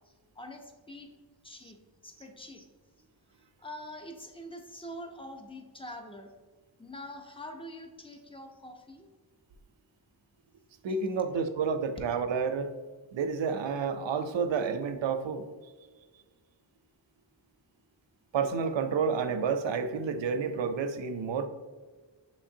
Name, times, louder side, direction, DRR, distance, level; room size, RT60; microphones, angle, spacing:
voice 1, 0.4-1.1 1.4-1.8 2.0-2.7 3.6-6.3 6.8-9.1 10.9-11.3, left 1 dB, 10° left, 4 dB, 0.5 m, -45 dB
voice 2, 10.8-12.7 13.1-15.5 18.3-21.5, right 5 dB, 80° right, 9 dB, 0.5 m, -30 dB
6.5 x 3.1 x 2.7 m, 1.4 s
wide cardioid pair, 80°, 44 cm